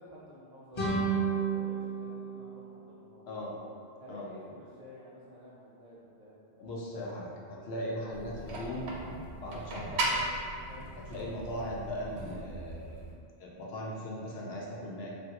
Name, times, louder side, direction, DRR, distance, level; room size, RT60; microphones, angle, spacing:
voice 1, 0.0-3.3 4.0-6.7 10.6-10.9, equal, 55° right, -7 dB, 0.5 m, -52 dB
sound 1, 0.7-3.5, right 5 dB, 35° left, 0.6 m, -32 dB
voice 2, 6.6-8.9 9.4-10.2 11.1-13.0 13.4-15.2, equal, 75° left, -3 dB, 0.9 m, -38 dB
sound 2, 8.1-13.1, right 2 dB, 85° right, 0.9 m, -37 dB
3.2 x 2.4 x 2.8 m, 2.4 s
omnidirectional pair, 1.1 m